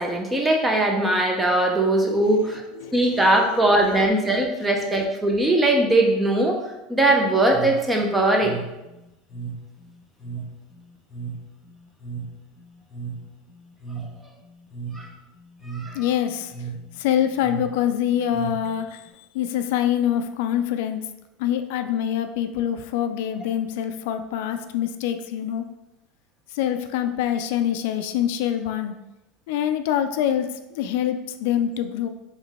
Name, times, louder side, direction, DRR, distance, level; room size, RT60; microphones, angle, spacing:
voice 1, 0.0-2.6 2.9-6.6 6.9-8.6 14.9-15.1 15.6-16.0, right 1 dB, 10° right, 1 dB, 0.6 m, -20 dB
voice 2, 2.2-3.3 15.9-16.5 16.9-21.0 21.4-25.7 26.5-28.9 29.5-32.1, left 10 dB, 70° left, 8 dB, 0.3 m, -25 dB
sound 1, 7.5-19.1, right 5 dB, 25° left, 1.1 m, -37 dB
3.8 x 3.1 x 3.5 m, 0.97 s
supercardioid pair, 145°, 0 cm